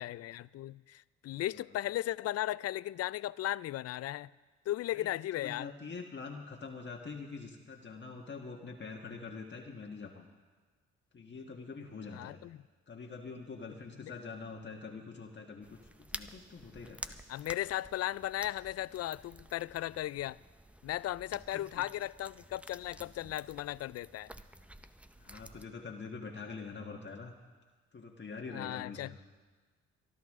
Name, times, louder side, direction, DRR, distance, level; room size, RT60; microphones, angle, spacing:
voice 1, 0.0-4.3 4.7-5.7 12.1-12.6 14.0-14.1 17.3-20.4 20.8-24.3 28.5-29.2, left 14 dB, 50° left, 20 dB, 0.4 m, -36 dB
voice 2, 5.4-10.3 11.1-12.4 12.9-17.2 21.5-21.9 25.2-27.3 27.9-29.1, left 4 dB, 35° left, 1 dB, 1.5 m, -45 dB
sound 1, 15.6-25.7, right 1 dB, 5° right, 0.7 m, -51 dB
24.0 x 11.5 x 3.7 m, 1.4 s
supercardioid pair, 65°, 31 cm